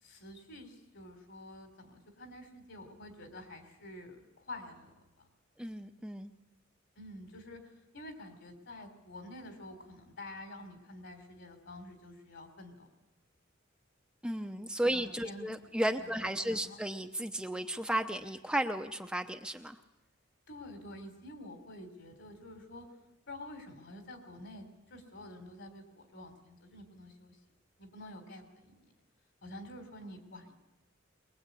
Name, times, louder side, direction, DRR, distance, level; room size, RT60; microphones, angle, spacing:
voice 1, 0.0-5.0 7.0-7.6 7.9-12.9 14.9-15.7 16.0-16.8 20.5-22.9 23.3-27.4 27.8-28.8 29.4-30.5, left 1 dB, 60° left, 6 dB, 3.9 m, -48 dB
voice 2, 5.6-6.3 14.2-19.8, right 1 dB, 5° right, 6 dB, 0.8 m, -34 dB
22.5 x 21.5 x 8.5 m, 0.97 s
head